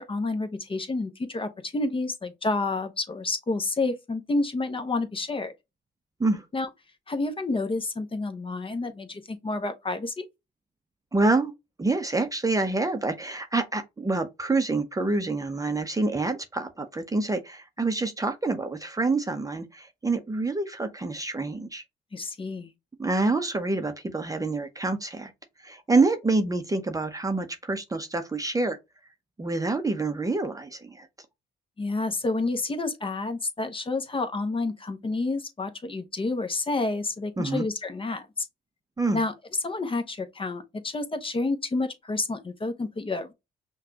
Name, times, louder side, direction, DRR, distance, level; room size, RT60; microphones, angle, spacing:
voice 1, 0.0-5.5 6.5-6.7 7.1-10.3 22.1-22.7 31.8-38.3 39.1-39.3 39.6-43.3, left 3 dB, 25° left, 0.8 m, -29 dB
voice 2, 11.1-11.5 11.8-21.8 23.0-25.3 25.6-28.8 29.4-31.1 37.4-37.7 39.0-39.2, right 3 dB, 15° right, 0.6 m, -27 dB
5.7 x 2.3 x 2.8 m
cardioid pair, 90°, 20 cm